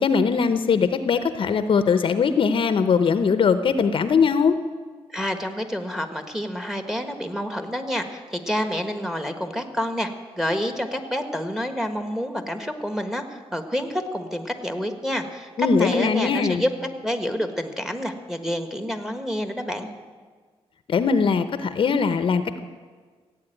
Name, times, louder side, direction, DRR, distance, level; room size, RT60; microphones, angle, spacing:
voice 1, 0.0-4.6 15.6-16.6 20.9-22.6, left 5 dB, 55° left, 11 dB, 0.8 m, -21 dB
voice 2, 5.1-10.1 10.4-16.7 17.0-19.9, equal, 5° right, 7 dB, 1.4 m, -28 dB
15.5 x 8.6 x 9.1 m, 1.5 s
cardioid pair, 105°, 11 cm